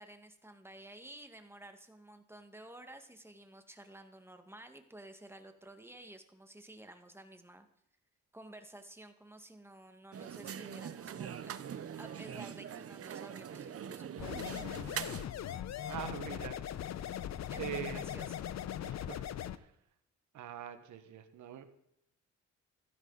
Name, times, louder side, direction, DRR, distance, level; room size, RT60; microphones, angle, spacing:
voice 1, 0.0-7.7 8.3-14.7 17.5-18.5, right 1 dB, 10° right, 6 dB, 1.9 m, -52 dB
sound 1, 10.1-15.2, right 8 dB, 50° right, 1.0 m, -43 dB
sound 2, 14.2-19.6, left 10 dB, 60° left, 0.9 m, -40 dB
voice 2, 15.9-16.6 17.6-18.0 18.8-19.3 19.6-19.7 20.3-21.7, right 11 dB, 75° right, 8 dB, 1.7 m, -43 dB
15.5 x 13.0 x 4.2 m, 0.79 s
cardioid pair, 90°, 30 cm